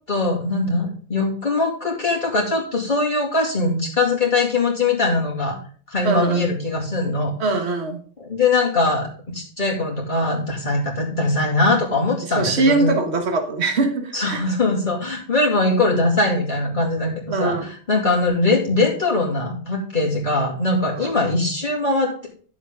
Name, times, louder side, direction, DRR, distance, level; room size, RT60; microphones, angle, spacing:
voice 1, 0.1-5.6 5.9-7.3 8.2-9.1 9.3-12.9 14.1-22.3, left 2 dB, 40° left, -4 dB, 2.6 m, -21 dB
voice 2, 6.0-6.5 7.4-8.0 12.2-14.4 17.3-17.7 20.9-21.1, right 3 dB, 65° right, 5 dB, 1.7 m, -22 dB
11.5 x 7.4 x 3.7 m, 0.44 s
omnidirectional pair, 1.2 m